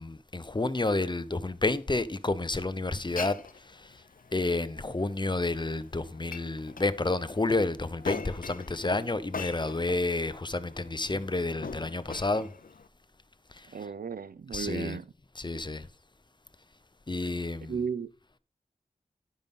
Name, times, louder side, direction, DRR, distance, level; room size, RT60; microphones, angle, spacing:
voice 1, 0.0-3.4 3.8-3.9 4.3-12.5 14.5-15.0 15.4-15.9 17.1-17.7, left 2 dB, 30° left, 0.7 m, -30 dB
Glass, 2.9-12.9, left 5 dB, 70° left, 0.5 m, -42 dB
voice 2, 13.7-15.1 17.2-17.3 17.7-18.1, right 6 dB, 90° right, 0.4 m, -35 dB
10.5 x 5.3 x 5.3 m
wide cardioid pair, 50°, 15 cm